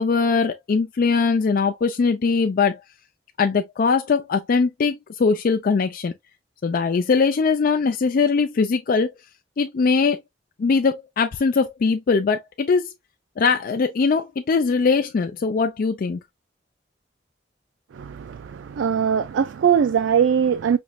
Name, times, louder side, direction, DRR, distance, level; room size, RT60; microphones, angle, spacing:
voice 1, 0.0-2.8 3.4-6.1 6.6-9.1 9.6-10.2 10.6-12.9 13.4-16.2, left 4 dB, 50° left, 0.4 m, -21 dB
voice 2, 17.9-20.8, right 7 dB, 85° right, 0.3 m, -21 dB
5.2 x 3.0 x 2.2 m
head